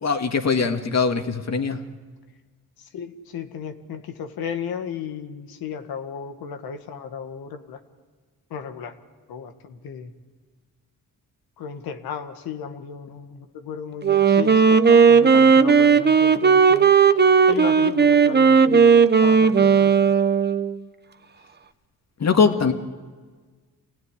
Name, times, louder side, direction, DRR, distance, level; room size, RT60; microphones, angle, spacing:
voice 1, 0.0-1.8 22.2-22.7, left 5 dB, 45° left, 6 dB, 2.2 m, -21 dB
voice 2, 2.8-7.8 8.5-8.9 9.3-10.1 11.6-16.9 17.5-18.9 19.2-20.1, left 7 dB, 85° left, 7 dB, 1.9 m, -34 dB
Wind instrument woodwind instrument, 14.0-20.8, right 6 dB, 30° right, 1.0 m, -16 dB
27.0 x 17.0 x 10.0 m, 1.5 s
cardioid pair, 70°, 36 cm